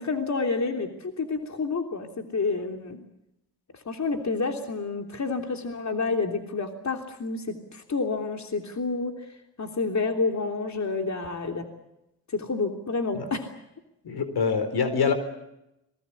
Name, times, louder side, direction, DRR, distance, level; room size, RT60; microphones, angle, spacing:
voice 1, 0.0-3.0 3.7-11.7 12.3-13.5, left 4 dB, 45° left, 4 dB, 3.2 m, -29 dB
voice 2, 14.0-15.1, left 5 dB, 75° left, 10 dB, 4.4 m, -25 dB
26.5 x 21.0 x 8.5 m, 0.88 s
cardioid pair, 60°, 38 cm